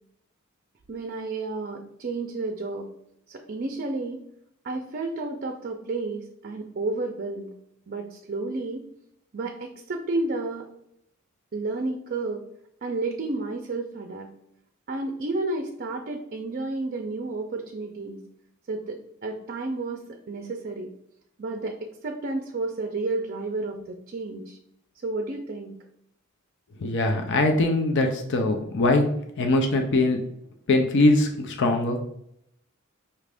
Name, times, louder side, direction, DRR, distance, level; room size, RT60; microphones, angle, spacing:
voice 1, 0.9-2.9 3.3-4.2 4.6-7.5 7.9-8.9 9.3-10.7 11.5-12.5 12.8-14.3 14.9-18.2 18.7-20.9 21.4-24.6 25.0-25.7, right 2 dB, 45° right, 3 dB, 0.4 m, -31 dB
voice 2, 26.8-29.1 29.4-30.2 30.7-32.1, left 2 dB, 60° left, 4 dB, 0.5 m, -22 dB
5.6 x 2.5 x 3.4 m, 0.75 s
head